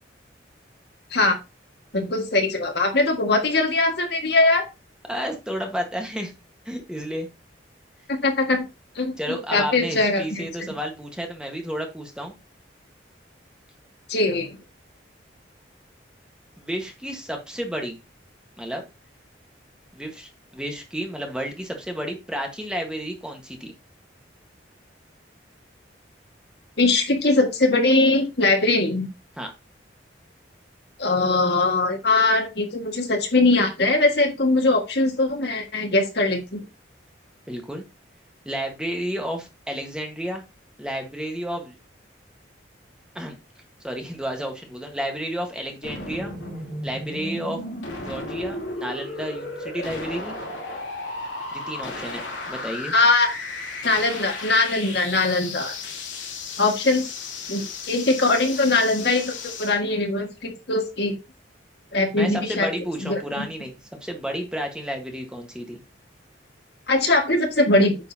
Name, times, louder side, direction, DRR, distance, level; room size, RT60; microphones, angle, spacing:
voice 1, 1.9-4.6 8.2-8.7 9.0-10.4 14.1-14.6 26.8-29.1 31.0-36.6 52.9-53.3 53.8-55.7 56.6-57.1 57.5-59.3 59.6-61.2 61.9-62.7 63.0-63.5 66.9-68.0, left 2 dB, 60° left, 4 dB, 1.7 m, -21 dB
voice 2, 5.1-6.3 6.6-7.3 9.2-12.3 16.6-18.0 18.6-18.8 19.9-23.7 29.4-29.5 37.5-37.8 38.4-40.4 40.8-41.8 43.1-43.4 43.8-46.3 46.8-47.6 48.0-50.3 51.5-52.9 62.1-63.8 64.0-65.8, equal, 5° right, 3 dB, 1.3 m, -31 dB
sound 1, 45.8-59.8, left 3 dB, 85° left, 2.7 m, -34 dB
9.2 x 6.6 x 2.8 m, 0.27 s
head